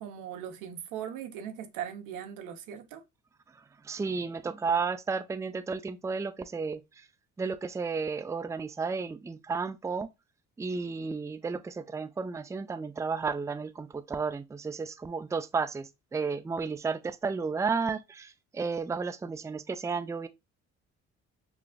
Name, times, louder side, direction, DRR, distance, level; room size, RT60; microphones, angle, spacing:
voice 1, 0.0-3.0, right 9 dB, 85° right, 0.9 m, -39 dB
voice 2, 3.8-7.1 7.4-10.1 10.6-20.3, right 5 dB, 10° right, 0.4 m, -33 dB
5.9 x 2.4 x 2.2 m
supercardioid pair, 65°, 31 cm